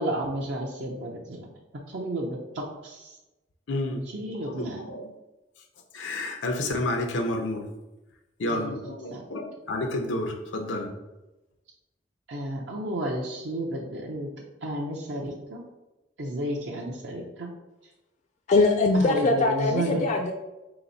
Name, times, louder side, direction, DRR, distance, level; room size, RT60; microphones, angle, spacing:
voice 1, 0.0-1.5 1.9-3.2 4.1-4.9 8.5-8.8 9.1-9.2 12.3-14.3 14.6-15.6 16.2-17.5 18.9-20.1, right 1 dB, 70° right, 0.6 m, -32 dB
voice 2, 3.7-4.0 4.5-5.1 5.9-7.7 8.4-10.9, left 1 dB, 90° left, 0.6 m, -30 dB
voice 3, 18.5-20.3, left 3 dB, 40° left, 0.3 m, -22 dB
4.2 x 2.9 x 3.9 m
head